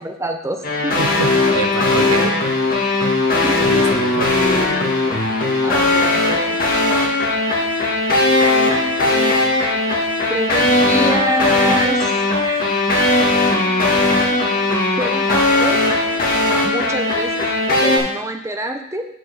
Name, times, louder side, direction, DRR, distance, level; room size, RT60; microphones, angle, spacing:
voice 1, 0.0-1.2 3.4-3.7 5.6-6.7 10.3-12.6 15.0-15.8 16.6-17.5 17.8-19.0, right 1 dB, 15° right, 4 dB, 0.7 m, -26 dB
sound 1, 0.6-18.0, left 2 dB, 40° left, 1.6 m, -18 dB
voice 2, 1.0-2.4 3.6-4.4, right 4 dB, 75° right, 9 dB, 0.7 m, -26 dB
6.3 x 5.1 x 6.5 m, 0.75 s
head